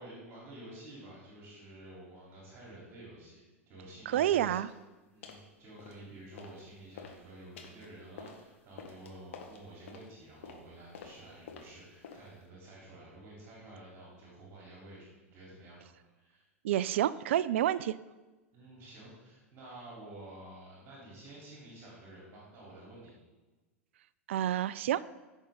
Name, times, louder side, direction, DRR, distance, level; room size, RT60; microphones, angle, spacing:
voice 1, 0.0-4.6 5.1-15.8 16.1-16.5 18.5-23.1, right 1 dB, 35° right, -5 dB, 3.7 m, -50 dB
voice 2, 4.1-4.7 16.6-18.0 24.3-25.1, right 11 dB, 60° right, 17 dB, 0.4 m, -29 dB
sound 1, 4.6-4.8 5.2-5.5 5.8-6.6 6.9-12.5, left 6 dB, 60° left, 1.5 m, -50 dB
15.5 x 6.3 x 3.9 m, 1.2 s
figure-of-eight pair, 90°, 8 cm